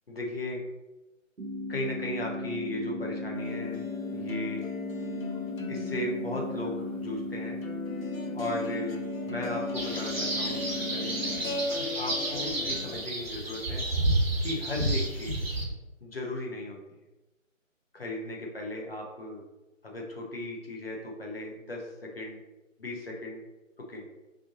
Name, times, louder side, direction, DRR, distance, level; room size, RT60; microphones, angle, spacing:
voice 1, 0.1-0.6 1.7-3.8 4.1-4.6 5.7-7.6 8.3-8.9 9.3-10.6 10.9-11.1 11.8-13.8 14.4-15.4 16.0-16.8 17.9-19.4 19.8-22.4 22.8-23.4 23.9-24.0, left 1 dB, 45° left, 0 dB, 0.9 m, -36 dB
sound 1, 1.4-11.4, left 2 dB, 80° right, 1.3 m, -36 dB
sound 2, 3.3-13.0, left 2 dB, 85° left, 0.8 m, -38 dB
sound 3, 9.7-15.6, right 1 dB, 45° right, 1.2 m, -30 dB
3.6 x 2.6 x 3.8 m, 1.0 s
figure-of-eight pair, 155°, 40 cm